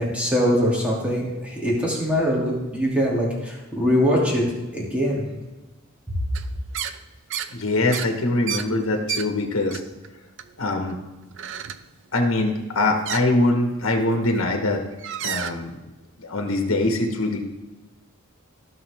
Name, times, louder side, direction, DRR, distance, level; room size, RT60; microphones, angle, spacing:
voice 1, 0.0-4.4 4.7-5.2, equal, 5° right, -5 dB, 2.8 m, -22 dB
sound 1, 6.3-6.5 6.7-7.0 7.3-7.5 7.9-9.3 9.7-10.1 10.4-10.9 11.3-11.8 13.0-13.2 14.2-14.4 14.9-15.5, right 9 dB, 60° right, 0.5 m, -31 dB
voice 2, 7.5-9.8 10.6-11.0 12.1-14.8 15.2-15.7 16.2-17.4, left 2 dB, 70° left, 3 dB, 1.5 m, -23 dB
15.5 x 6.2 x 3.6 m, 1.1 s
head